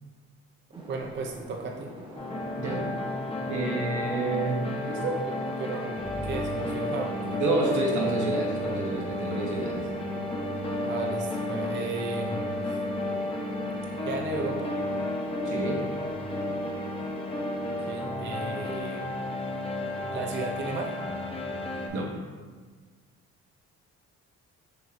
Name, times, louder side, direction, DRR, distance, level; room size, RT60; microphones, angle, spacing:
sound 1, 0.7-18.7, equal, 15° right, 0.9 m, -44 dB
voice 1, 0.9-1.9 5.6-7.4 10.8-12.8 14.0-14.7 17.8-19.3 20.1-21.0, right 3 dB, 40° right, 2 dB, 0.4 m, -35 dB
sound 2, 2.2-21.9, left 1 dB, 20° left, 0.7 m, -32 dB
voice 2, 2.6-2.9 3.5-5.2 7.4-9.9 15.4-15.8 21.9-22.1, right 2 dB, 75° right, -2 dB, 1.0 m, -29 dB
6.1 x 3.0 x 2.5 m, 1.5 s
cardioid pair, 90°, 30 cm